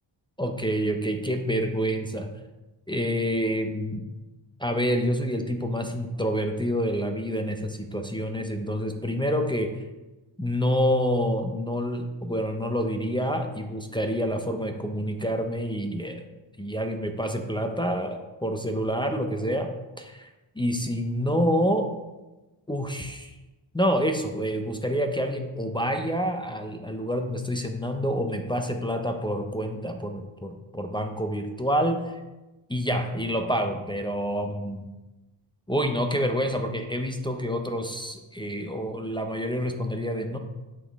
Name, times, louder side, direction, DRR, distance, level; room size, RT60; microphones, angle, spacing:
voice 1, 0.4-2.3 2.9-4.0 4.6-9.7 10.4-16.2 16.6-19.7 20.0-20.3 20.6-21.9 22.7-23.3 23.7-32.1 32.7-34.9 35.7-40.4, equal, 10° left, 4 dB, 0.5 m, -27 dB
8.3 x 3.8 x 3.5 m, 1.1 s
wide cardioid pair, 85°, 50 cm